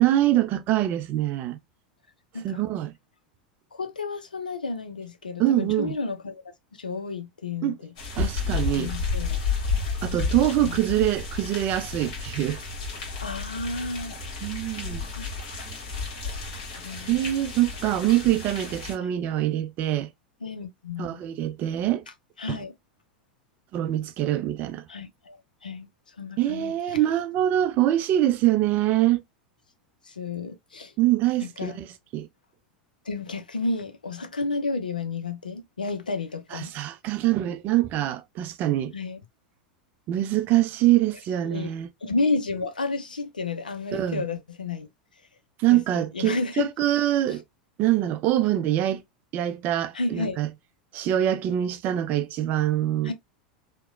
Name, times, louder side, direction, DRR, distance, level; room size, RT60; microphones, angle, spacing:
voice 1, 0.0-1.6 2.4-2.9 5.4-6.0 7.6-7.8 8.2-8.9 10.0-12.6 14.4-15.0 17.1-20.1 21.0-22.1 22.5-22.6 23.7-24.8 26.4-29.2 31.0-31.9 32.1-32.3 36.5-38.9 40.1-41.9 43.9-44.2 45.6-47.4 47.8-49.0 49.3-50.5 50.9-53.1, right 13 dB, 40° right, 0.4 m, -24 dB
voice 2, 3.7-6.4 6.7-7.9 8.7-9.4 10.1-10.8 13.2-14.4 15.2-15.3 16.6-17.6 19.0-19.1 20.4-21.2 22.4-22.7 24.9-27.0 30.0-30.9 31.4-31.8 33.0-36.7 38.9-39.2 41.4-41.7 42.0-44.9 45.7-46.7 47.3-47.4 49.9-50.4 53.0-53.1, left 3 dB, 85° left, 0.4 m, -32 dB
sound 1, 8.0-18.9, left 4 dB, 60° left, 1.4 m, -31 dB
2.9 x 2.1 x 2.3 m
figure-of-eight pair, 85°, 4 cm